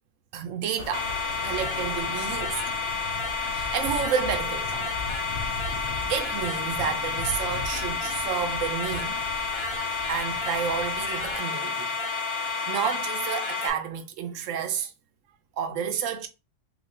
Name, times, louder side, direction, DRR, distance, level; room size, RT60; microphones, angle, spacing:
voice 1, 0.3-1.1 1.4-2.6 3.5-4.9 6.1-9.2 10.1-11.9 12.7-14.9 15.6-16.3, right 7 dB, 85° right, 1.0 m, -30 dB
sound 1, 0.8-11.4, left 3 dB, 75° left, 0.9 m, -39 dB
sound 2, 0.9-13.7, left 4 dB, 35° left, 0.5 m, -30 dB
3.4 x 3.1 x 2.5 m
omnidirectional pair, 1.3 m